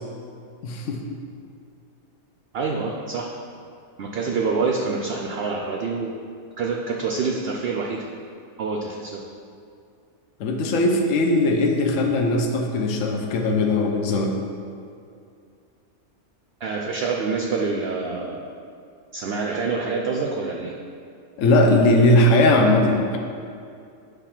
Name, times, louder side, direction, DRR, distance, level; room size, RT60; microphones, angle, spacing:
voice 1, 0.6-1.0 10.4-14.3 21.4-23.2, left 1 dB, 65° left, 2 dB, 1.0 m, -19 dB
voice 2, 2.5-3.3 4.0-6.1 6.6-8.0 8.6-9.2 16.6-18.4 19.1-20.7, right 4 dB, 65° right, 0 dB, 0.6 m, -26 dB
8.3 x 3.4 x 5.8 m, 2.4 s
omnidirectional pair, 1.5 m